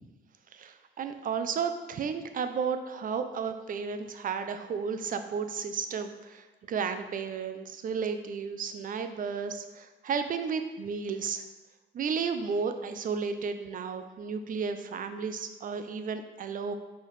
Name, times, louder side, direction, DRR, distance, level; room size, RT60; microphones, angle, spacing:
voice 1, 0.5-11.4 11.9-16.7, right 6 dB, 45° right, 8 dB, 0.4 m, -33 dB
4.4 x 3.4 x 3.1 m, 1.1 s
cardioid pair, 90°, 20 cm